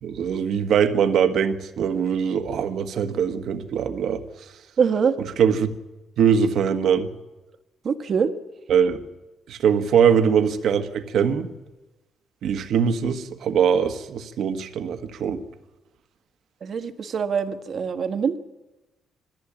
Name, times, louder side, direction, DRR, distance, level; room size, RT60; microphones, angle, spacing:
voice 1, 0.0-4.2 5.4-5.7 6.2-7.1 8.7-9.0 9.5-11.5 12.4-15.4, right 7 dB, 70° right, 8 dB, 1.5 m, -22 dB
voice 2, 4.8-5.1 7.8-8.3 16.6-18.4, right 6 dB, 55° right, 10 dB, 1.5 m, -23 dB
20.0 x 15.5 x 8.8 m, 1.1 s
cardioid pair, 90°, 0 cm